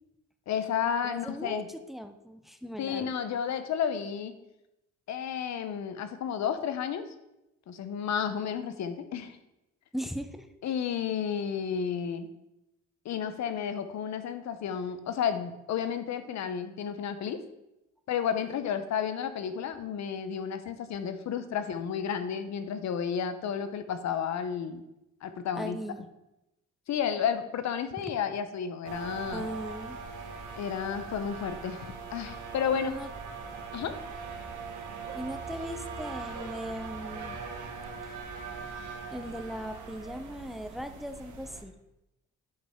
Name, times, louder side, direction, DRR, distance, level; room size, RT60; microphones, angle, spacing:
voice 1, 0.5-1.7 2.8-4.3 5.1-7.1 7.7-9.4 10.6-12.3 13.0-17.4 18.1-24.8 25.2-25.8 26.9-29.5 30.6-32.9 33.7-33.9, left 8 dB, 65° left, 10 dB, 0.8 m, -32 dB
voice 2, 1.0-1.6 1.9-3.1 9.9-10.5 25.6-26.1 29.3-30.0 32.7-33.1 35.1-37.4 39.1-41.7, equal, ahead, 9 dB, 0.6 m, -38 dB
sound 1, 28.8-41.6, right 4 dB, 80° right, 1.3 m, -41 dB
9.2 x 5.4 x 3.5 m, 0.91 s
cardioid pair, 90°, 30 cm